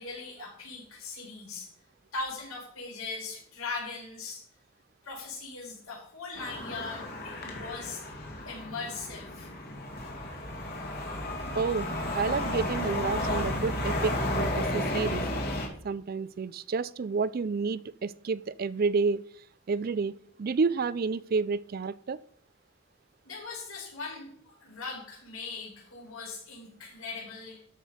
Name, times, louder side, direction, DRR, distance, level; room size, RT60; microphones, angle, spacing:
voice 1, 0.0-1.7 2.1-4.4 5.0-8.0 8.4-9.5 23.2-27.6, left 3 dB, 85° left, -2 dB, 4.5 m, -40 dB
sound 1, 6.3-15.7, left 1 dB, 50° left, 2.3 m, -33 dB
voice 2, 11.5-15.2 15.8-19.2 19.7-22.2, right 4 dB, 45° right, 18 dB, 0.4 m, -30 dB
12.5 x 6.0 x 5.1 m, 0.64 s
head